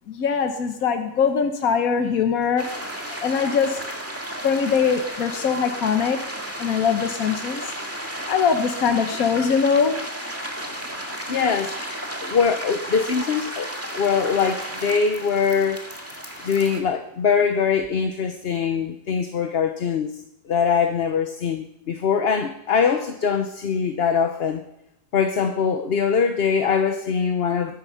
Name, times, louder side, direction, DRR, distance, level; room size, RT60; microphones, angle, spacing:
voice 1, 0.1-2.7 3.2-3.8 4.4-6.2 6.6-7.7 8.3-10.0, left 6 dB, 80° left, 6 dB, 1.5 m, -22 dB
sound 1, 2.6-16.8, equal, 10° right, 2.1 m, -33 dB
voice 2, 11.3-11.7 12.2-13.7 13.9-15.8 16.4-20.1 20.5-24.6 25.1-27.8, left 6 dB, 50° left, 6 dB, 1.1 m, -22 dB
21.5 x 11.0 x 5.7 m, 0.86 s
omnidirectional pair, 1.5 m